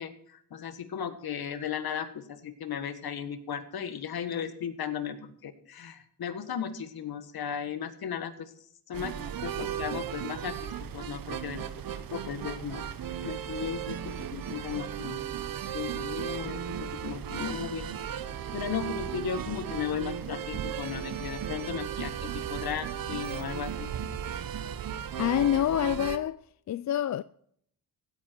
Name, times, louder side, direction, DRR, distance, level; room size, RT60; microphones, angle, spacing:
voice 1, 0.0-8.5 8.9-11.6 11.9-12.8 13.2-15.2 15.7-17.9 18.5-23.9, left 8 dB, 65° left, 1.5 m, -36 dB
sound 1, 8.9-26.2, right 9 dB, 60° right, 1.0 m, -36 dB
voice 2, 25.2-26.4 26.7-27.2, left 11 dB, 45° left, 0.4 m, -26 dB
16.0 x 9.1 x 4.5 m
cardioid pair, 75°, 40 cm